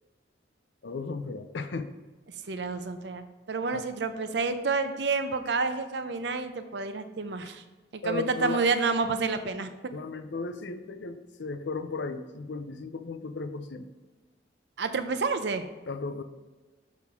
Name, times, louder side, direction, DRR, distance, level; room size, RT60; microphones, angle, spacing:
voice 1, 0.8-1.9 3.7-3.9 8.0-8.6 9.9-13.9 15.9-16.2, left 3 dB, 80° left, 9 dB, 0.5 m, -35 dB
voice 2, 2.5-7.6 7.9-9.7 14.8-15.6, right 4 dB, 75° right, 9 dB, 0.6 m, -29 dB
6.2 x 5.8 x 3.6 m, 1.2 s
head